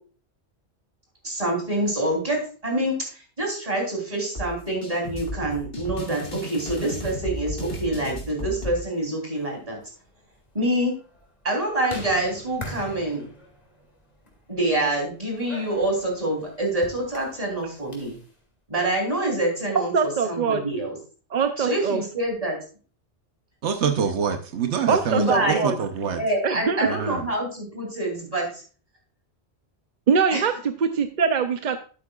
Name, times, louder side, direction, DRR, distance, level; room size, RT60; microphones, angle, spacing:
voice 1, 1.2-3.0 3.4-9.8 10.5-10.9 11.4-13.2 14.5-18.1 18.7-19.9 20.2-21.0 21.6-22.6 25.1-25.7 26.2-28.6 30.3-30.4, right 1 dB, 35° right, 0 dB, 3.4 m, -26 dB
sound 1, 4.4-8.8, equal, 60° left, 2.7 m, -34 dB
sound 2, 9.2-18.3, left 1 dB, 35° left, 2.3 m, -44 dB
voice 2, 19.9-20.6 21.3-22.0 24.9-25.8 26.4-26.9 30.1-31.8, right 6 dB, 50° right, 8 dB, 0.6 m, -23 dB
voice 3, 23.6-26.2 26.9-27.3, right 6 dB, 85° right, 6 dB, 1.1 m, -26 dB
12.0 x 8.4 x 2.3 m, 0.38 s
omnidirectional pair, 1.1 m